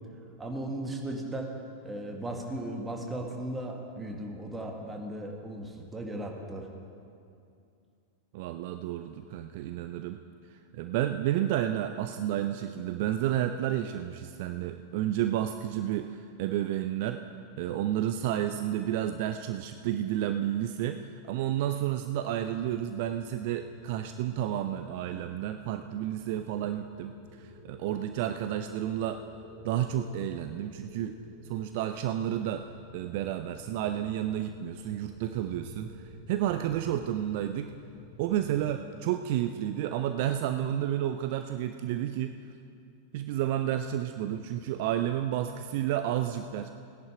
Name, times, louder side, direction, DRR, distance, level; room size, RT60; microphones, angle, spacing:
voice 1, 0.4-1.6 1.8-6.7, right 1 dB, 10° right, 1 dB, 1.8 m, -36 dB
voice 2, 8.3-10.2 10.5-17.2 17.6-29.2 29.6-31.2 31.4-32.7 32.9-37.7 38.2-42.5 43.1-46.7, right 11 dB, 50° right, 9 dB, 0.4 m, -31 dB
sound 1, 22.2-38.7, equal, 65° left, 2.2 m, -51 dB
17.0 x 10.5 x 4.9 m, 2.5 s
figure-of-eight pair, 90°, 0 cm